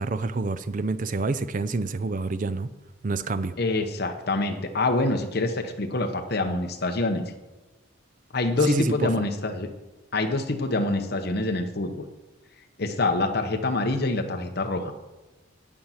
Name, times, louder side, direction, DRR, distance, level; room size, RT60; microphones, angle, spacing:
voice 1, 0.0-2.7 3.0-3.6 8.6-9.1, right 3 dB, 40° right, 13 dB, 0.5 m, -27 dB
voice 2, 3.6-7.3 8.3-9.7 10.1-12.1 12.8-14.9, left 2 dB, 50° left, 4 dB, 0.9 m, -26 dB
8.9 x 8.6 x 5.7 m, 1.1 s
head